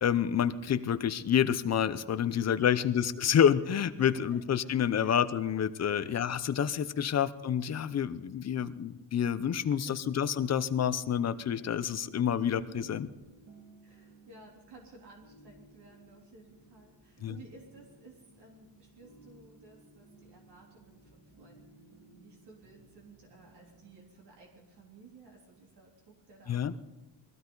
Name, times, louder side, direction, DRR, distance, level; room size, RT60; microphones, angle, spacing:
voice 1, 0.0-13.1 17.2-17.4 26.5-26.7, left 8 dB, 35° left, 12 dB, 0.7 m, -28 dB
voice 2, 2.3-2.7 4.0-5.2 5.9-6.3 7.0-7.2 9.7-10.0 12.7-13.0 13.8-26.8, right 3 dB, 65° right, -1 dB, 3.5 m, -56 dB
sound 1, 11.2-24.0, right 2 dB, 40° right, 3.9 m, -58 dB
22.0 x 15.5 x 3.9 m, 1.1 s
cardioid pair, 170°, 43 cm